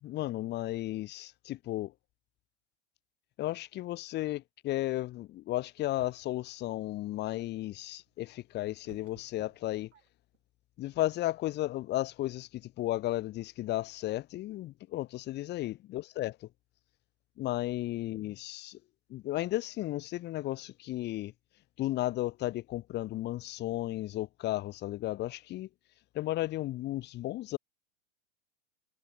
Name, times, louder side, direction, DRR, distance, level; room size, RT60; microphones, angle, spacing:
voice 1, 0.0-1.9 3.4-9.9 10.8-16.5 17.4-18.8 19.1-21.3 21.8-25.7 26.1-27.6, left 16 dB, 30° left, 0.7 m, -34 dB
sound 1, 5.8-6.5 8.1-10.4, right 10 dB, 80° right, 2.9 m, -58 dB
hypercardioid pair, 95°, 36 cm